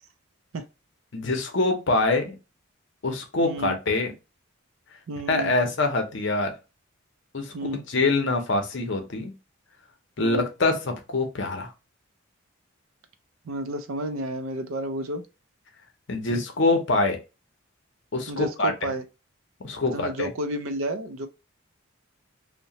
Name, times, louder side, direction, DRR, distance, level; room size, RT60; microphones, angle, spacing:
voice 1, 1.1-2.3 3.0-4.1 5.3-6.5 7.3-7.5 7.9-9.3 10.2-11.7 16.1-17.2 18.1-18.7 19.6-20.3, left 2 dB, 55° left, 0.6 m, -24 dB
voice 2, 3.4-3.8 5.1-5.5 7.5-7.8 10.2-10.5 13.4-15.2 18.3-19.0 19.9-21.3, right 1 dB, 70° right, 0.4 m, -31 dB
2.8 x 2.1 x 2.7 m
head